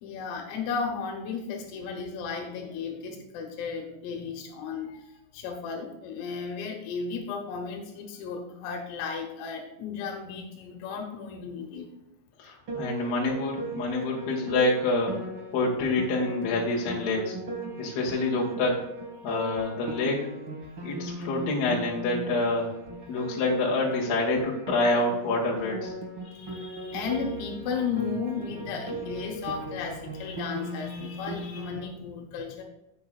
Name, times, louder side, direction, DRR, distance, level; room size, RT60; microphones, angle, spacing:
voice 1, 0.0-11.9 26.2-32.6, left 5 dB, 85° left, 2 dB, 3.9 m, -34 dB
voice 2, 12.4-15.2 15.5-17.4 17.8-18.8 19.2-20.2 20.8-22.7 23.1-25.9, left 2 dB, 55° left, -2 dB, 3.7 m, -27 dB
Piano, 12.7-31.9, right 2 dB, 80° right, 1.1 m, -38 dB
16.5 x 6.0 x 2.4 m, 0.89 s
omnidirectional pair, 5.9 m